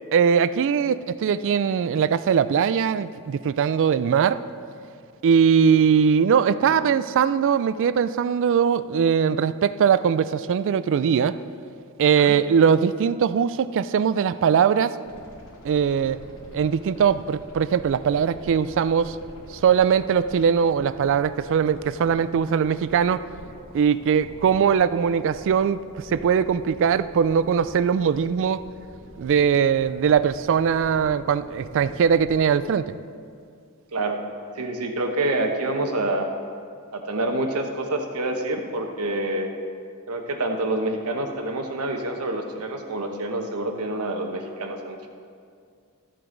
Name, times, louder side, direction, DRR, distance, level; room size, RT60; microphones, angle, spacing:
voice 1, 0.1-4.4 5.2-11.3 12.0-14.9 15.6-16.2 16.5-19.2 19.6-23.2 23.7-28.6 29.2-32.9, right 7 dB, 60° right, 14 dB, 0.3 m, -21 dB
sound 1, 15.0-32.4, equal, 70° left, 2.5 m, -46 dB
voice 2, 34.5-36.3 36.9-39.5 40.1-45.1, right 2 dB, 90° right, 4 dB, 1.1 m, -27 dB
13.5 x 7.7 x 3.9 m, 2.2 s
head